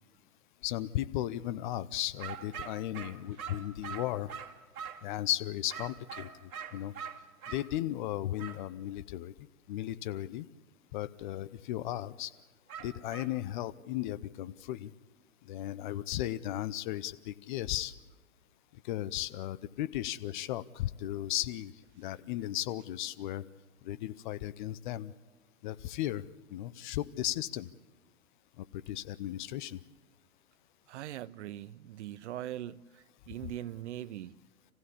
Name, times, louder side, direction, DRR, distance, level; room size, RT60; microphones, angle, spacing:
voice 1, 0.6-4.3 5.0-6.9 7.5-9.3 9.7-10.5 10.9-12.3 12.8-14.9 15.5-17.9 18.8-21.7 22.0-23.4 23.8-25.1 25.6-26.2 26.5-27.7 28.6-29.8, left 13 dB, 35° left, 0.6 m, -35 dB
sound 1, 2.2-5.1 5.7-7.7 8.4-8.6 12.7-13.4, right 7 dB, 65° right, 2.4 m, -43 dB
voice 2, 30.9-34.4, right 12 dB, 50° right, 0.7 m, -41 dB
27.0 x 16.0 x 8.5 m
hypercardioid pair, 120°, 44 cm